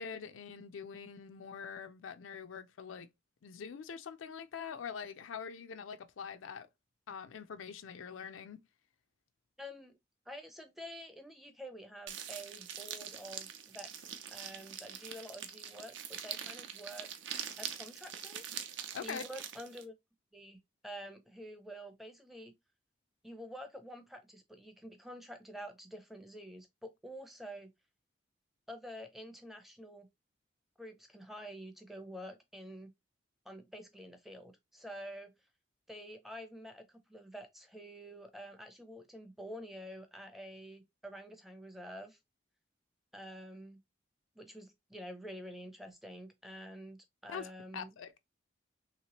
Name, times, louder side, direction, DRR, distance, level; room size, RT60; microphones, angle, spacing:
voice 1, 0.0-3.1 3.4-6.7 7.1-8.6 18.9-19.2 47.3-48.1, left 6 dB, 80° left, 0.4 m, -44 dB
voice 2, 9.6-10.0 10.3-17.1 17.6-19.9 20.3-22.5 23.2-27.7 28.7-30.1 30.8-32.9 33.5-35.3 35.9-42.2 43.1-43.8 44.4-47.9, equal, ahead, 0.5 m, -48 dB
sound 1, 12.1-19.8, right 9 dB, 70° right, 0.5 m, -44 dB
3.2 x 2.9 x 2.9 m
head